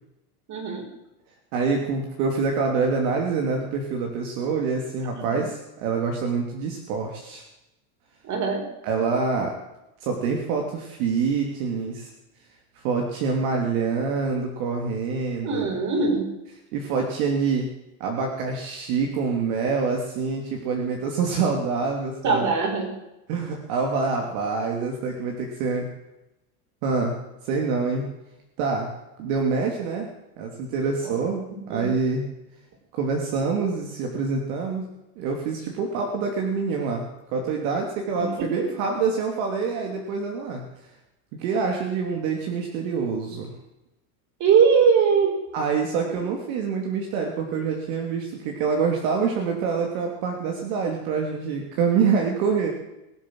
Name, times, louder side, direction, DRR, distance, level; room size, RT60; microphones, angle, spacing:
voice 1, 0.5-0.9 5.3-5.4 8.2-8.7 15.4-16.3 22.2-23.0 31.0-31.1 31.5-31.9 38.1-38.7 44.4-45.4, right 5 dB, 40° right, 4 dB, 4.9 m, -22 dB
voice 2, 1.5-7.4 8.8-9.6 10.0-12.1 12.8-15.8 16.7-17.7 18.0-22.5 23.3-25.9 26.8-27.2 27.4-28.0 28.6-28.9 29.2-30.1 30.4-32.2 32.9-40.6 41.4-43.5 45.5-52.7, right 5 dB, 60° right, 1 dB, 3.0 m, -26 dB
22.0 x 7.8 x 7.8 m, 0.93 s
supercardioid pair, 140°, 47 cm